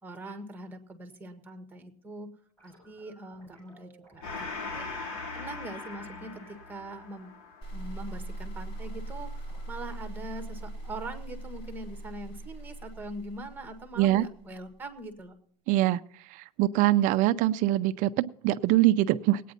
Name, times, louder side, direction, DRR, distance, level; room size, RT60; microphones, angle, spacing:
voice 1, 0.0-2.3 2.6-4.5 4.7-4.9 5.3-7.3 7.7-15.4, right 2 dB, 10° right, 6 dB, 1.6 m, -42 dB
sound 1, 2.6-11.5, right 1 dB, 5° left, 7.2 m, -58 dB
Gong, 4.2-11.2, left 3 dB, 65° left, 3.3 m, -41 dB
sound 2, 7.6-14.7, right 2 dB, 30° left, 3.2 m, -40 dB
voice 2, 15.7-16.0 16.3-19.4, right 15 dB, 40° right, 13 dB, 0.5 m, -23 dB
19.5 x 9.2 x 4.1 m, 0.62 s
supercardioid pair, 150°, 20 cm